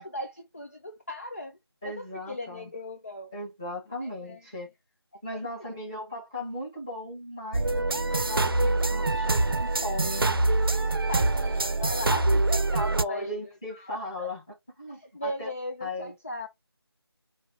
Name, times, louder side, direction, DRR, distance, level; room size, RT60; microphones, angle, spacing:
voice 1, 0.0-1.6 1.8-3.3 3.9-4.4 5.3-5.8 11.1-12.7 13.1-14.3 14.9-16.5, left 1 dB, 35° left, 0.5 m, -38 dB
voice 2, 1.8-2.7 3.3-4.7 5.2-10.3 12.7-14.4 14.8-15.5 15.8-16.1, left 1 dB, 10° left, 1.2 m, -37 dB
sound 1, 7.5-13.0, right 2 dB, 60° right, 0.6 m, -25 dB
4.8 x 2.6 x 3.4 m
figure-of-eight pair, 175°, 14 cm